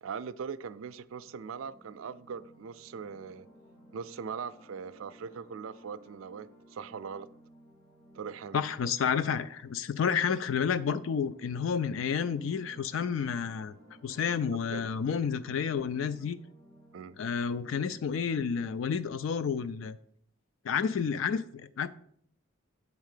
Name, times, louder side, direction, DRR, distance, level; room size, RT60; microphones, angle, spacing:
voice 1, 0.0-3.5 3.9-7.3 8.1-8.6 14.5-14.9 16.9-17.2, right 6 dB, 90° right, 14 dB, 0.4 m, -41 dB
sound 1, 1.1-18.4, equal, 20° left, 1.0 m, -57 dB
voice 2, 8.5-13.7 14.0-16.4 17.2-20.0 20.6-21.9, left 7 dB, 80° left, 14 dB, 0.3 m, -30 dB
8.2 x 3.5 x 6.6 m, 0.66 s
head